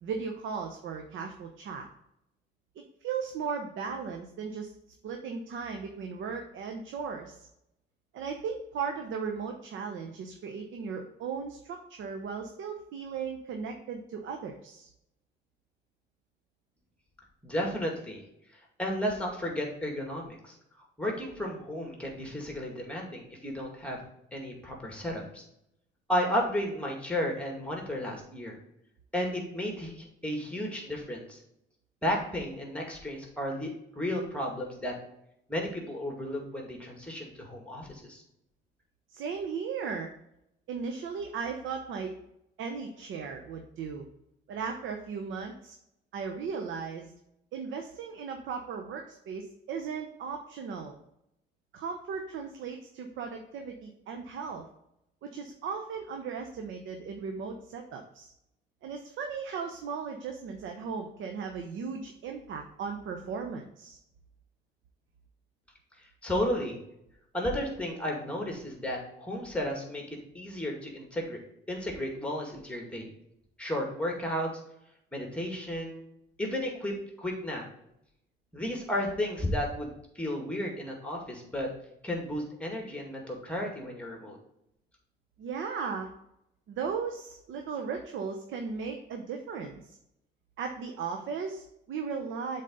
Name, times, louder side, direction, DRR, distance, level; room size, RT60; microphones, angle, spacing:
voice 1, 0.0-1.9 2.8-4.7 5.0-7.5 8.1-14.9 39.1-40.1 40.7-42.2 42.6-44.0 44.5-45.8 46.1-47.1 47.5-51.0 51.7-54.7 55.2-58.3 58.8-64.0 85.4-86.1 86.7-90.0 90.6-92.6, right 5 dB, 75° right, 3 dB, 0.8 m, -36 dB
voice 2, 17.4-18.2 18.8-20.5 21.0-24.0 24.3-25.4 26.1-28.6 29.1-31.4 32.0-34.9 35.5-38.2 66.2-66.8 67.3-70.0 70.3-71.4 71.7-73.1 73.6-74.5 75.1-76.0 76.4-76.9 77.2-77.6 78.5-81.7 82.0-84.4, left 1 dB, 5° left, 0 dB, 2.1 m, -33 dB
7.6 x 4.1 x 3.8 m, 0.80 s
cardioid pair, 90°, 20 cm